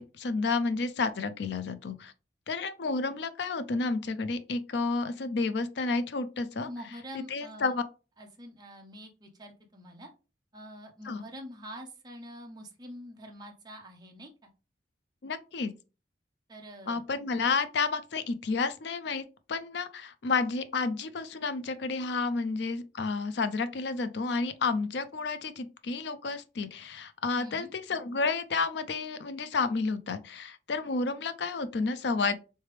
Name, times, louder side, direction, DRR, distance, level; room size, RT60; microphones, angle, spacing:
voice 1, 0.0-2.1 2.5-6.7 7.1-7.8 11.0-11.2 15.2-15.7 16.9-32.3, left 4 dB, 60° left, 0.4 m, -31 dB
voice 2, 6.6-7.7 8.2-10.1 10.5-14.3 16.5-17.0 27.4-27.7, equal, 20° right, 0.6 m, -45 dB
3.3 x 3.3 x 3.2 m
head